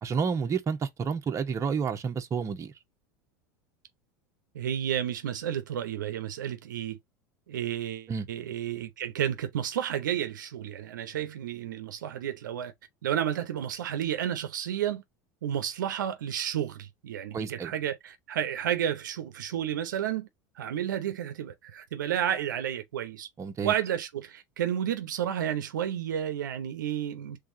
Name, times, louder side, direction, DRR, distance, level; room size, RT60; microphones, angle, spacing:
voice 1, 0.0-2.7 8.1-8.3 17.3-17.7 23.4-23.7, right 6 dB, 30° right, 1.0 m, -30 dB
voice 2, 4.5-7.0 7.5-12.7 13.0-15.0 15.4-20.3 20.6-23.3 23.6-27.4, right 10 dB, 85° right, 0.7 m, -31 dB
3.5 x 3.4 x 2.7 m
hypercardioid pair, 95°, 10 cm